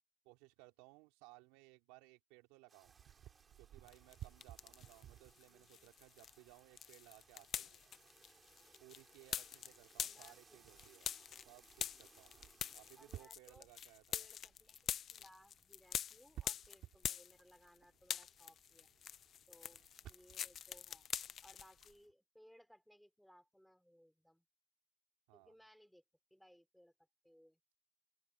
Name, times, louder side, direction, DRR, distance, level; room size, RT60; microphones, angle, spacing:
voice 1, 0.2-2.9 3.6-7.9 8.8-12.4 12.7-14.3 25.3-25.5, right 24 dB, 85° right, 3.7 m, -62 dB
sound 1, 2.7-13.3, right 4 dB, 20° right, 4.9 m, -68 dB
sound 2, 2.8-22.1, right 12 dB, 50° right, 3.5 m, -60 dB
sound 3, 3.9-5.0 5.4-17.8 18.0-21.9, left 9 dB, 40° left, 0.6 m, -45 dB
voice 2, 5.5-5.9 10.0-10.8 13.0-13.7 14.1-18.9 19.5-21.1 21.4-24.4 25.3-26.0 26.3-26.9 27.2-27.6, equal, ahead, 4.2 m, -65 dB
open air
cardioid pair, 130°, 0 cm